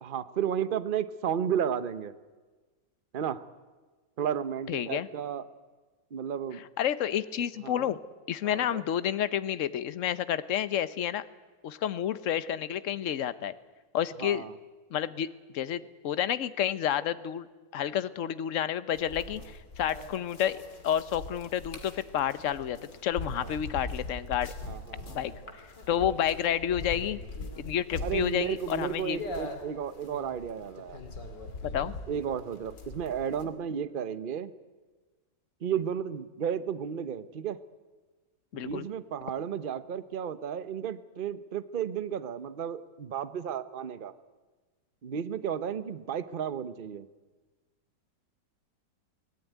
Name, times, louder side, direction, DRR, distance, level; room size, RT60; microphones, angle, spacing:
voice 1, 0.0-2.1 3.1-3.4 4.2-5.4 6.1-6.6 7.6-7.9 8.4-8.8 14.2-14.5 23.4-23.6 24.7-25.4 25.9-26.2 28.0-31.0 32.1-34.5 35.6-37.6 38.5-44.1 45.0-47.1, right 8 dB, 40° right, 12 dB, 0.8 m, -33 dB
voice 2, 4.7-5.1 6.8-8.0 8.3-11.2 11.6-13.5 13.9-14.5 14.9-15.3 15.5-17.5 17.7-24.5 25.1-25.3 25.9-27.2 27.6-29.2 31.6-31.9 38.5-38.9, left 10 dB, 55° left, 14 dB, 1.1 m, -30 dB
sound 1, 18.9-33.4, left 2 dB, 75° left, 3.0 m, -41 dB
24.0 x 18.0 x 9.4 m, 1.3 s
omnidirectional pair, 1.9 m